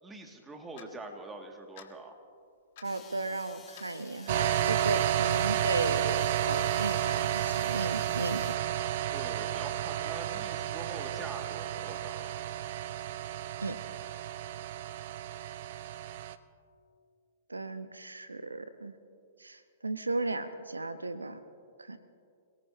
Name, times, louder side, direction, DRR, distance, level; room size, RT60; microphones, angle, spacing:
voice 1, 0.0-2.2 9.1-12.3, right 2 dB, 15° right, 3 dB, 2.0 m, -44 dB
Clock, 0.8-0.9 1.8-1.9 2.8-2.9 3.8-3.9 4.8-4.9 5.8-5.9 6.8-6.9, left 10 dB, 50° left, 1.4 m, -51 dB
sound 1, 2.8-8.6, left 7 dB, 20° left, 1.5 m, -53 dB
voice 2, 2.8-8.5 13.6-13.8 17.5-18.9 19.4-21.4 21.8-22.0, right 2 dB, 85° right, 11 dB, 0.8 m, -35 dB
sound 2, 4.3-16.4, right 11 dB, 50° right, 0.7 m, -31 dB
27.5 x 18.5 x 2.8 m, 2.3 s
figure-of-eight pair, 110°, 0 cm